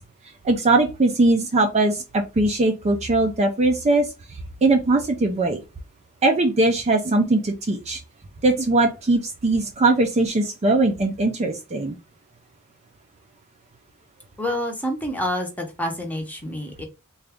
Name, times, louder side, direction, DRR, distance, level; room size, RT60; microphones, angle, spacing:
voice 1, 0.4-5.6 6.2-8.0 8.4-12.0, right 2 dB, 30° right, 3 dB, 0.4 m, -20 dB
voice 2, 14.4-16.8, left 1 dB, 5° left, 2 dB, 0.8 m, -28 dB
3.8 x 2.3 x 3.4 m, 0.28 s
head